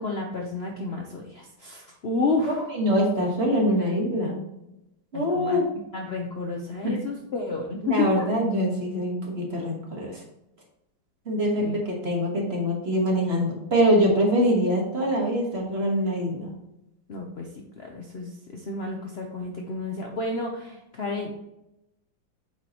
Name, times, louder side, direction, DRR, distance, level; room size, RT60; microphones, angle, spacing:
voice 1, 0.0-2.6 5.1-5.6 5.9-8.2 11.6-11.8 17.1-17.5 17.8-21.4, left 3 dB, 85° left, 0 dB, 0.5 m, -30 dB
voice 2, 2.4-4.4 5.1-5.6 6.8-7.0 7.8-10.2 11.2-16.5, equal, 35° right, -1 dB, 1.5 m, -24 dB
8.2 x 4.7 x 2.9 m, 0.87 s
omnidirectional pair, 2.2 m